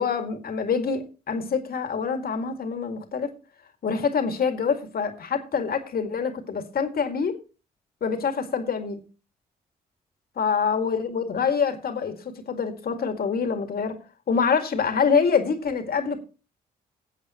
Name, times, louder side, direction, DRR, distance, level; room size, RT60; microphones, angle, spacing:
voice 1, 0.0-3.3 3.8-7.4 8.0-9.0 10.4-14.0 14.3-16.2, left 6 dB, 60° left, 2.2 m, -25 dB
18.5 x 8.1 x 3.0 m
supercardioid pair, 50°, 18 cm